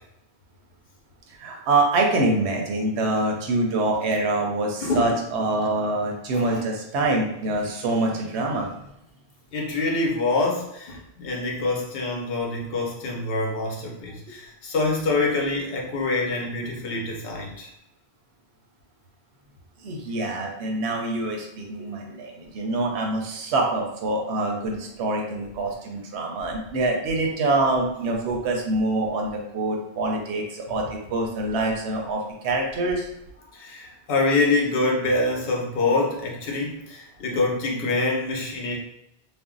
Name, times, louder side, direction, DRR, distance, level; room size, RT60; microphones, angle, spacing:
voice 1, 1.4-8.7 19.8-33.1, right 2 dB, 85° right, 1 dB, 0.9 m, -25 dB
voice 2, 6.3-6.6 9.5-17.7 33.5-38.8, left 3 dB, 65° left, -1 dB, 0.9 m, -25 dB
2.5 x 2.0 x 3.7 m, 0.81 s
omnidirectional pair, 1.1 m